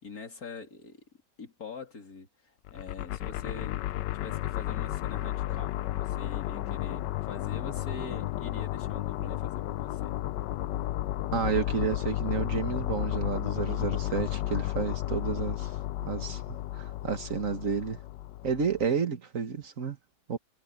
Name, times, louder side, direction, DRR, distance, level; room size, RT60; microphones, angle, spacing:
voice 1, 0.0-1.0 1.4-3.8 4.1-10.2, left 4 dB, 55° left, 3.7 m, -44 dB
sound 1, 2.7-18.9, left 14 dB, 80° left, 1.2 m, -33 dB
voice 2, 11.3-15.7 16.0-18.0 18.4-20.0 20.3-20.4, right 6 dB, 50° right, 2.0 m, -31 dB
omnidirectional pair, 1.9 m